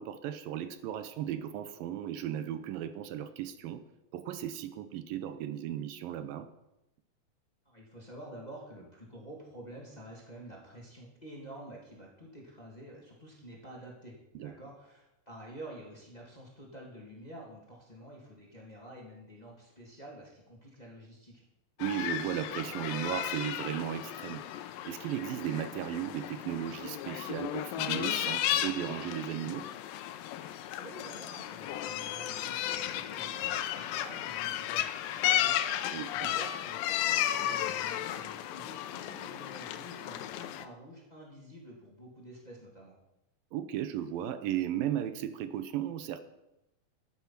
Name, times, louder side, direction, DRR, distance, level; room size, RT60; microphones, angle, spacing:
voice 1, 0.0-3.8 4.1-6.5 14.4-14.5 21.8-24.4 24.9-29.7 35.9-36.3 43.5-46.2, right 11 dB, 80° right, 11 dB, 2.5 m, -35 dB
voice 2, 7.6-21.4 30.8-34.9 35.1-43.0, right 1 dB, 15° left, -2 dB, 2.1 m, -49 dB
sound 1, 21.8-40.7, left 12 dB, 80° left, 2.3 m, -34 dB
13.0 x 9.2 x 5.9 m, 0.89 s
omnidirectional pair, 4.1 m